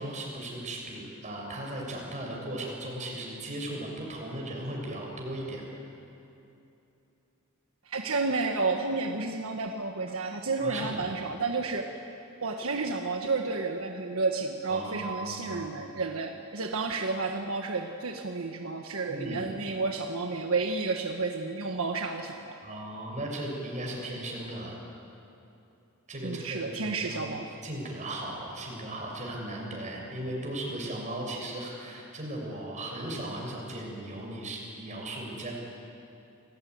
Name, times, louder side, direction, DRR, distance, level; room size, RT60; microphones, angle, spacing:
voice 1, 0.0-5.7 10.6-11.1 14.7-15.6 19.1-19.5 22.6-24.8 26.1-27.3 27.6-35.5, right 1 dB, 35° right, -1 dB, 6.8 m, -37 dB
voice 2, 7.9-11.9 12.4-22.6 26.2-27.5, right 3 dB, 75° right, 3 dB, 1.5 m, -31 dB
29.0 x 19.0 x 9.5 m, 2.8 s
head